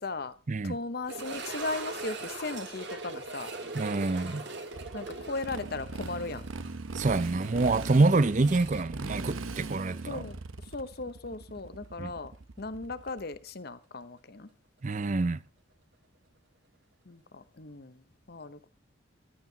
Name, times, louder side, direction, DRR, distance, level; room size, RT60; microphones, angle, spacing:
voice 1, 0.0-0.4 0.6-3.5 4.9-6.5 10.1-14.5 17.0-18.7, left 3 dB, 50° left, 0.9 m, -37 dB
sound 1, 1.1-10.0 10.2-10.3 11.0-11.1 13.7-13.8, right 3 dB, 55° right, 2.0 m, -41 dB
voice 2, 3.7-4.4 6.9-10.2 12.0-12.1 14.8-15.4, right 3 dB, 35° right, 0.5 m, -26 dB
Motorcycle, 4.7-13.4, right 3 dB, 75° right, 0.8 m, -40 dB
14.5 x 13.0 x 2.8 m
head